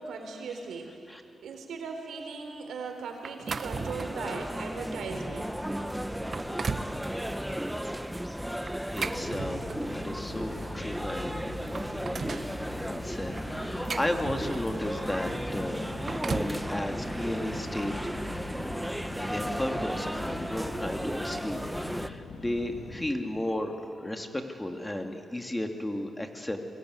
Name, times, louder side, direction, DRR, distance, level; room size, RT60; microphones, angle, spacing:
voice 1, 0.0-5.6 6.7-6.8, right 4 dB, 85° right, 4 dB, 4.1 m, -39 dB
sound 1, 3.2-4.3 4.9-5.0 5.6-5.7 6.2-7.0 8.7-10.0 11.0-11.1 11.5-12.5 13.4-14.8 15.8-16.6, right 4 dB, 45° right, 0.9 m, -36 dB
sound 2, 3.6-22.1, equal, 5° right, 1.1 m, -35 dB
voice 2, 8.9-11.3 12.8-15.8 16.1-18.1 19.2-26.6, left 1 dB, 10° left, 4 dB, 2.4 m, -34 dB
sound 3, 9.1-23.1, left 5 dB, 80° left, 2.1 m, -44 dB
26.0 x 22.5 x 9.6 m, 2.5 s
cardioid pair, 80°, 0 cm